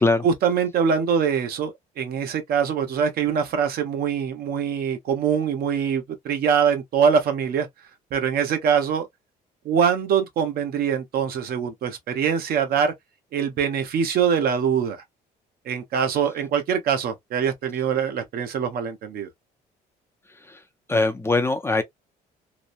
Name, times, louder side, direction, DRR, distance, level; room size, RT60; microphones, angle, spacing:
voice 1, 0.2-7.7 8.1-9.1 9.6-12.9 13.3-15.0 15.7-19.3, right 7 dB, 65° right, 0.9 m, -23 dB
voice 2, 20.9-21.8, left 2 dB, 15° left, 0.5 m, -21 dB
3.0 x 2.0 x 2.5 m
cardioid pair, 110°, 17 cm